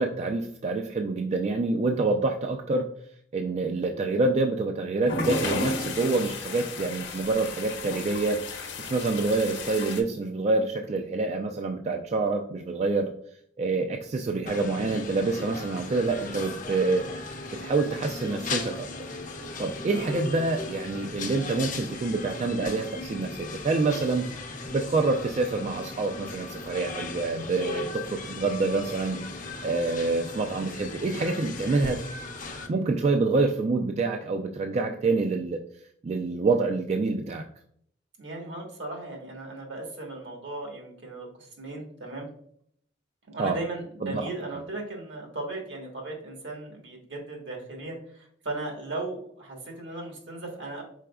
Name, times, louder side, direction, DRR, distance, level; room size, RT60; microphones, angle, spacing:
voice 1, 0.0-2.9 3.3-8.4 8.8-13.1 13.6-17.1 17.5-18.9 19.6-29.2 29.6-32.0 32.7-35.6 36.0-37.4 43.4-43.6 44.0-44.2, right 3 dB, 35° right, 4 dB, 0.3 m, -27 dB
sound 1, 5.0-10.0, left 3 dB, 75° left, 0.8 m, -33 dB
sound 2, 14.5-32.7, left 3 dB, 45° left, 0.6 m, -37 dB
voice 2, 19.9-20.5 38.2-42.3 43.3-50.8, right 2 dB, 75° right, 1 dB, 1.3 m, -37 dB
4.8 x 4.1 x 2.2 m, 0.66 s
head